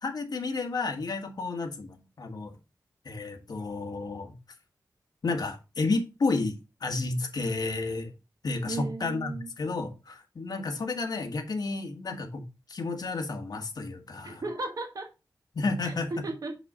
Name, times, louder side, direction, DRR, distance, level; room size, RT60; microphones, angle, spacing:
voice 1, 0.0-2.5 3.0-4.3 5.2-6.5 6.8-8.1 8.4-12.4 12.7-14.4 15.5-16.1, left 3 dB, 65° left, 1.5 m, -31 dB
voice 2, 8.7-9.5 14.2-15.1 15.8-16.6, right 3 dB, 55° right, 1.3 m, -35 dB
5.9 x 5.5 x 3.7 m
wide cardioid pair, 120°, 7 cm